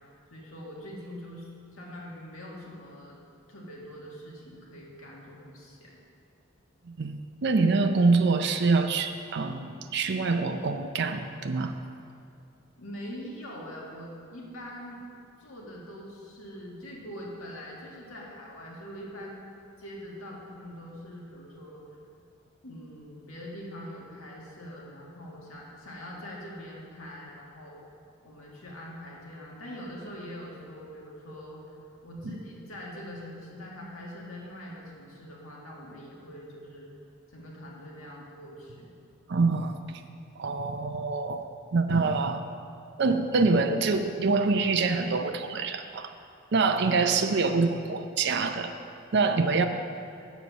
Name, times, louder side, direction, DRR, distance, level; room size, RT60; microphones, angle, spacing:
voice 1, 0.3-3.2 3.5-6.0 12.7-15.0 15.4-19.5 19.8-21.8 22.6-27.8 28.2-31.6 32.0-36.9 37.3-38.9, equal, 85° left, -3 dB, 1.8 m, -43 dB
voice 2, 7.0-11.8 32.2-32.4 39.3-39.7 40.4-41.4 41.7-42.4 43.0-46.1 46.5-48.7 49.1-49.7, right 4 dB, 55° right, 6 dB, 0.5 m, -25 dB
8.1 x 7.1 x 6.2 m, 2.4 s
head